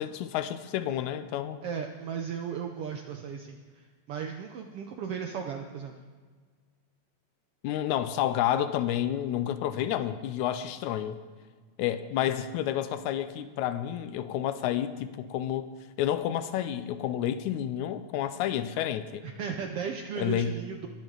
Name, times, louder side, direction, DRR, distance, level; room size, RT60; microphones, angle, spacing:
voice 1, 0.0-1.6 7.6-11.2 11.8-15.7 16.0-19.2 20.2-20.6, left 11 dB, 85° left, 12 dB, 1.9 m, -30 dB
voice 2, 1.6-5.9 19.2-20.9, right 7 dB, 80° right, 4 dB, 1.3 m, -36 dB
22.0 x 7.4 x 3.9 m, 1.5 s
omnidirectional pair, 3.4 m